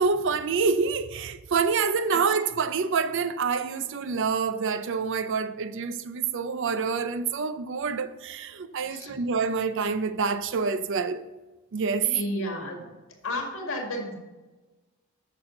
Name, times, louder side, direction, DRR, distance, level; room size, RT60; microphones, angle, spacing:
voice 1, 0.0-11.2 11.7-12.1, right 5 dB, 55° right, 0.5 m, -27 dB
voice 2, 8.9-9.2 12.0-12.9 13.2-14.1, left 1 dB, 60° left, 2.0 m, -32 dB
8.6 x 6.2 x 3.7 m
head